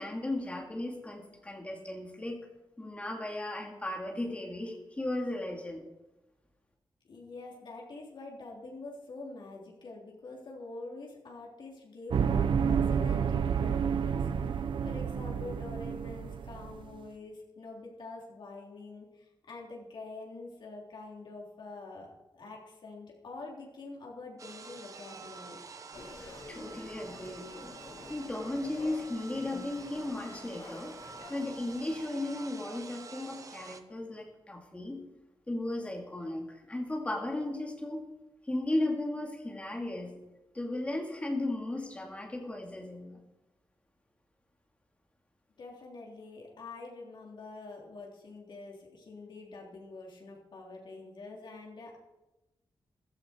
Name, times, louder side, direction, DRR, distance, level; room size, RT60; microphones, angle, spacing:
voice 1, 0.0-2.4 2.8-5.8 26.5-27.7 28.1-30.9 31.3-35.0 35.5-38.0 38.5-40.2 40.5-43.2, left 1 dB, 15° left, 1 dB, 2.5 m, -35 dB
voice 2, 7.0-25.6 45.6-52.0, left 3 dB, 65° left, -1 dB, 3.6 m, -46 dB
sound 1, 12.1-16.9, right 7 dB, 70° right, 0.7 m, -29 dB
sound 2, 24.4-33.8, right 4 dB, 40° right, 1.0 m, -48 dB
sound 3, 25.9-32.0, left 2 dB, 40° left, 2.0 m, -49 dB
15.0 x 13.5 x 4.6 m, 1.0 s
wide cardioid pair, 175°, 9 cm